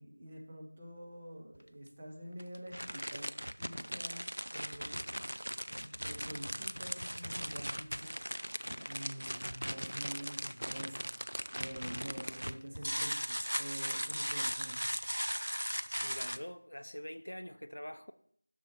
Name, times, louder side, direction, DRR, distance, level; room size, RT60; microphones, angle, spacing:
voice 1, 0.0-3.3 3.6-5.2 5.7-8.6 8.9-14.9, right 1 dB, 10° right, 0.5 m, -47 dB
sound 1, 1.5-1.6 2.4-16.4, equal, 75° right, 0.4 m, -38 dB
voice 2, 16.0-18.1, equal, 55° left, 0.5 m, -44 dB
6.7 x 6.3 x 4.4 m
figure-of-eight pair, 175°, 0 cm